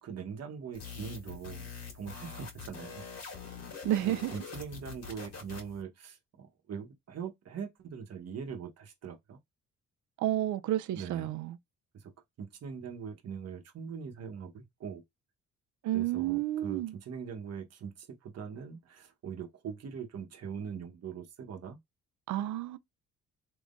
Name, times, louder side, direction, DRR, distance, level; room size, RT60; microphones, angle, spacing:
voice 1, 0.0-1.7 1.9-3.0 4.1-9.4 10.9-11.3 12.4-15.0 15.9-21.8, right 7 dB, 55° right, 1.1 m, -42 dB
sound 1, 0.7-5.8, left 5 dB, 55° left, 1.7 m, -44 dB
voice 2, 3.8-4.3 10.2-11.6 15.8-16.9 22.3-22.8, right 13 dB, 75° right, 0.5 m, -30 dB
3.7 x 3.0 x 2.5 m
cardioid pair, 90°, 30 cm